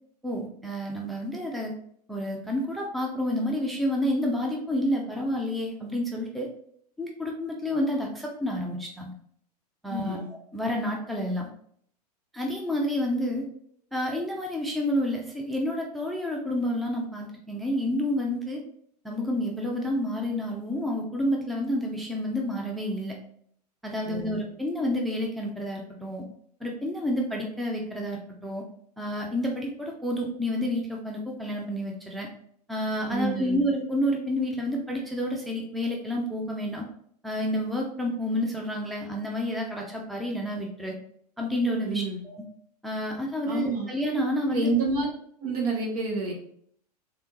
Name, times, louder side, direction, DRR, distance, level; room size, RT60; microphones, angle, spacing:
voice 1, 0.2-1.7 2.1-6.5 7.0-9.1 9.8-11.5 12.3-13.5 13.9-18.6 19.0-23.1 23.8-26.2 26.6-28.6 29.0-32.3 32.7-36.8 37.2-41.0 41.4-42.4 42.8-44.7, left 1 dB, ahead, -1 dB, 0.5 m, -29 dB
voice 2, 9.9-10.3 24.0-24.3 33.1-33.7 41.8-42.2 43.5-43.9 44.5-45.1 45.4-46.3, right 3 dB, 60° right, -1 dB, 1.3 m, -28 dB
3.5 x 3.3 x 3.1 m, 0.64 s
figure-of-eight pair, 90°, 21 cm